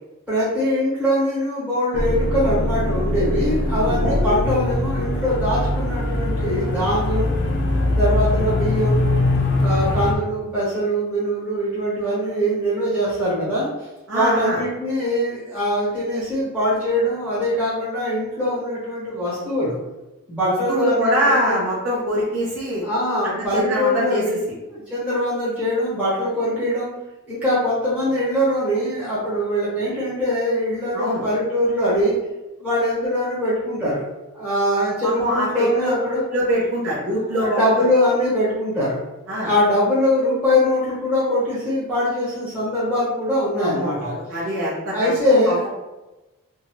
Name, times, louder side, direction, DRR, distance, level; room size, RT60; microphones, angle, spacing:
voice 1, 0.3-7.3 8.0-9.0 9.6-13.7 14.1-19.8 20.3-21.5 22.8-24.3 24.7-26.9 27.3-32.1 32.6-34.0 34.3-36.2 37.3-39.0 39.4-44.1 44.9-45.6, equal, 5° right, -11 dB, 1.2 m, -22 dB
sound 1, 1.9-10.1, left 1 dB, 50° left, 0.4 m, -22 dB
voice 2, 3.8-4.2 14.1-14.6 20.4-22.8 23.2-24.4 30.9-31.2 35.0-35.9 36.3-37.8 39.3-39.5 43.6-45.7, equal, 60° right, -8 dB, 0.7 m, -24 dB
2.6 x 2.3 x 3.1 m, 1.1 s
head